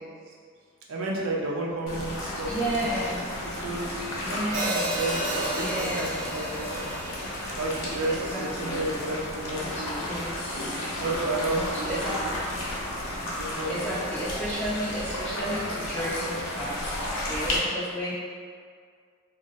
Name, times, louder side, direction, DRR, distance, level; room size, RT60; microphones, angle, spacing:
voice 1, 0.9-2.8 3.6-3.9 4.9-6.1 6.3-6.9 7.6-10.2 11.0-12.2 13.3-14.0, right 2 dB, 75° right, -3 dB, 0.5 m, -32 dB
sound 1, 1.9-17.6, left 1 dB, 80° left, 0.7 m, -33 dB
voice 2, 2.4-3.2 4.2-5.0 5.5-6.2 8.1-8.9 9.5-11.0 11.5-12.2 13.7-16.9 17.2-18.1, equal, 10° left, -14 dB, 0.6 m, -33 dB
Hi-hat, 4.5-8.7, right 1 dB, 40° right, 0.7 m, -33 dB
3.9 x 2.0 x 2.5 m, 2.1 s
head